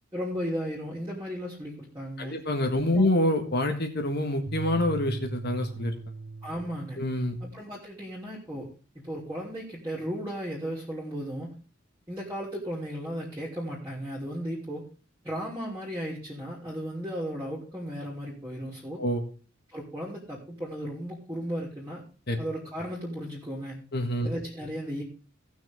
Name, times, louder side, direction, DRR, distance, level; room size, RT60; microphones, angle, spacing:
voice 1, 0.1-2.3 2.9-3.2 6.4-7.0 7.4-8.7 8.9-11.5 12.1-14.9 15.2-19.0 19.7-22.0 22.4-23.8 24.2-25.0, equal, 15° right, -7 dB, 3.0 m, -35 dB
voice 2, 2.2-6.0 7.0-7.4 19.0-19.2 22.3-22.4 23.9-24.3, left 1 dB, 50° left, 4 dB, 1.6 m, -26 dB
sound 1, 4.5-7.0, right 3 dB, 50° right, 1.2 m, -38 dB
18.0 x 6.5 x 3.5 m, 0.37 s
head